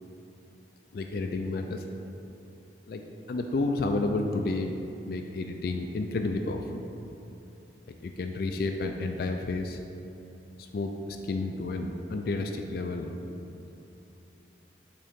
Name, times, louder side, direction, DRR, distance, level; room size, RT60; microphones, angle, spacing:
voice 1, 0.9-1.8 2.9-3.0 3.3-4.8 5.1-6.8 8.0-9.8 10.6-13.1, left 2 dB, 55° left, 4 dB, 0.3 m, -31 dB
7.9 x 3.8 x 3.6 m, 2.8 s
head